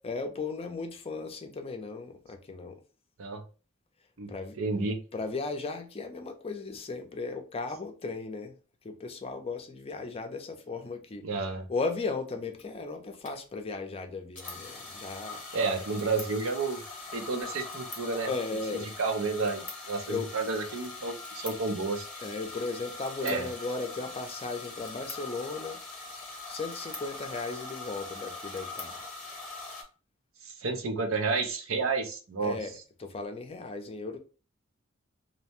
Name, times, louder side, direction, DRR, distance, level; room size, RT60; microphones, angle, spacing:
voice 1, 0.0-2.8 4.3-4.6 5.1-8.5 8.8-11.3 11.7-15.4 18.3-18.9 20.1-20.3 22.2-25.8 26.5-29.1 32.4-32.7 33.0-34.2, left 3 dB, 30° left, 0.5 m, -36 dB
voice 2, 4.6-5.0 11.2-11.7 15.5-16.8 17.1-18.3 18.7-22.1 23.2-23.5 30.4-32.6, right 4 dB, 75° right, 0.6 m, -31 dB
sound 1, 12.3-12.4 12.6-12.7 13.2-13.4 14.4-29.8, left 3 dB, 5° left, 0.9 m, -42 dB
2.7 x 2.1 x 2.9 m
head